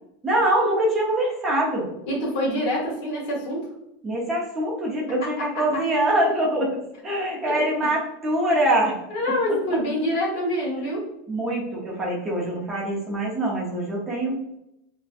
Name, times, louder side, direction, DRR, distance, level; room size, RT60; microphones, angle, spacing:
voice 1, 0.2-1.9 4.0-6.8 7.0-9.0 11.3-14.6, right 1 dB, 20° right, -3 dB, 0.6 m, -24 dB
voice 2, 2.1-3.7 5.2-5.8 7.4-7.9 9.1-11.1, left 1 dB, 55° left, -3 dB, 1.2 m, -26 dB
2.6 x 2.1 x 2.4 m, 0.81 s
supercardioid pair, 150°, 0 cm